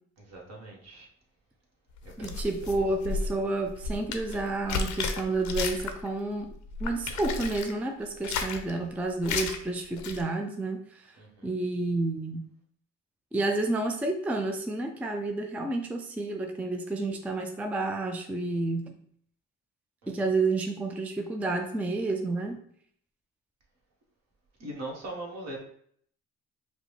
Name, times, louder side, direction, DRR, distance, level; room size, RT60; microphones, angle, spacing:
voice 1, 0.2-1.1 2.0-2.8 11.2-11.5 20.0-20.1 24.6-25.6, right 1 dB, 60° right, -1 dB, 1.4 m, -41 dB
sound 1, 2.0-6.1 6.4-7.7 8.1-8.7 9.2-9.6 9.9-10.2, left 4 dB, 70° left, 0.6 m, -33 dB
voice 2, 2.2-6.5 6.8-11.2 11.4-12.4 13.3-18.9 20.1-22.6, right 2 dB, 5° right, 4 dB, 0.4 m, -30 dB
5.0 x 2.1 x 3.2 m, 0.63 s
cardioid pair, 90°, 30 cm